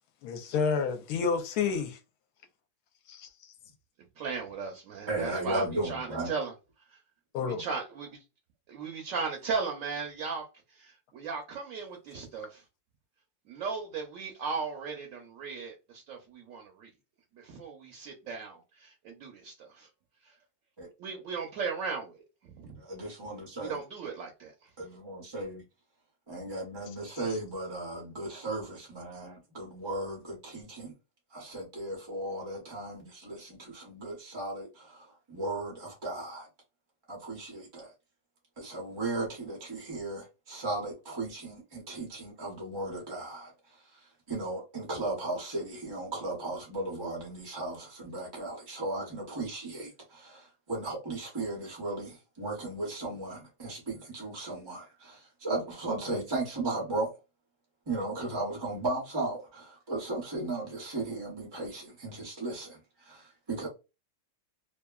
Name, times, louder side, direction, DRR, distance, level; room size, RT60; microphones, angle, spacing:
voice 1, 0.2-2.0 3.1-3.5 7.3-7.6, left 5 dB, 75° left, 1.0 m, -30 dB
voice 2, 4.2-6.5 7.4-8.1 8.7-10.4 10.7-12.6 13.5-16.9 17.3-19.9 21.0-22.2 22.5-22.8 23.3-24.5, right 5 dB, 65° right, 0.9 m, -36 dB
voice 3, 5.1-6.3 20.8-20.9 22.8-23.8 24.8-25.6 26.3-30.9 31.3-36.5 37.1-37.9 38.6-43.5 44.3-57.1 57.9-62.8 63.0-63.7, right 2 dB, 35° right, 0.4 m, -36 dB
2.7 x 2.4 x 2.2 m
omnidirectional pair, 1.8 m